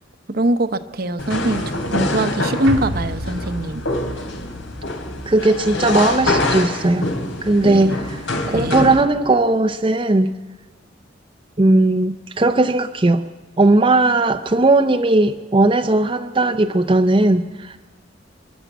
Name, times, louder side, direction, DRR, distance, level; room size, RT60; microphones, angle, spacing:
voice 1, 0.3-3.8 7.6-8.0 8.5-8.9, right 1 dB, 55° right, 10 dB, 0.9 m, -22 dB
sound 1, 1.2-9.0, left 2 dB, 85° left, 3.0 m, -25 dB
sound 2, 2.7-7.1 7.4-7.5, equal, 85° right, 1.5 m, -32 dB
voice 2, 5.3-7.0 7.4-10.3 11.6-13.2 13.6-17.8, right 2 dB, 25° right, 6 dB, 0.6 m, -17 dB
27.5 x 11.5 x 8.2 m, 1.2 s
head